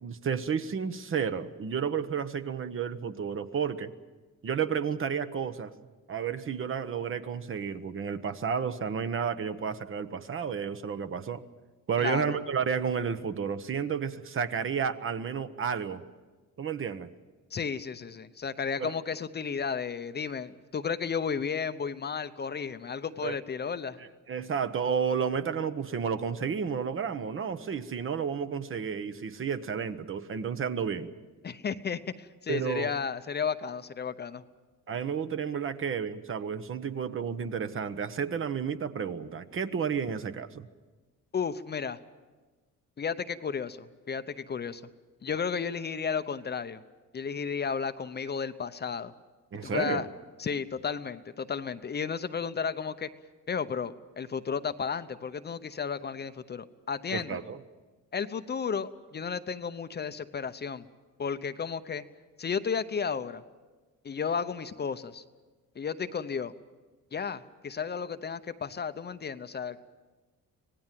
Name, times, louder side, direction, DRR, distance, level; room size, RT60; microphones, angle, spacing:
voice 1, 0.0-3.9 4.4-5.7 6.1-11.4 11.9-16.0 16.6-17.1 18.8-18.9 23.2-23.4 24.0-31.1 32.5-32.9 34.9-40.7 49.5-50.1 57.1-57.6, right 7 dB, 40° right, 10 dB, 1.1 m, -31 dB
voice 2, 12.0-12.3 17.5-24.0 31.4-34.4 41.3-42.0 43.0-44.8 45.2-46.8 47.1-49.1 49.6-50.1 50.4-53.1 53.5-57.4 58.1-60.8 61.2-62.0 62.4-63.4 64.0-65.2 65.8-66.5 67.1-69.8, left 6 dB, 30° left, 11 dB, 0.8 m, -33 dB
25.5 x 18.0 x 7.6 m, 1.3 s
cardioid pair, 120°, 32 cm